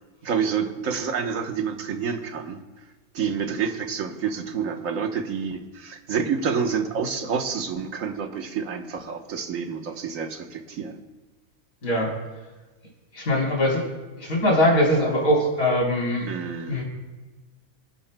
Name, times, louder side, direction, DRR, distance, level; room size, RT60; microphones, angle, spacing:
voice 1, 0.2-2.6 3.1-11.0 16.3-16.8, right 6 dB, 65° right, 5 dB, 1.4 m, -28 dB
voice 2, 11.8-12.1 13.1-13.8 14.2-16.3 16.7-16.8, left 1 dB, 65° left, -3 dB, 4.1 m, -21 dB
26.0 x 12.0 x 2.2 m, 1.2 s
omnidirectional pair, 1.6 m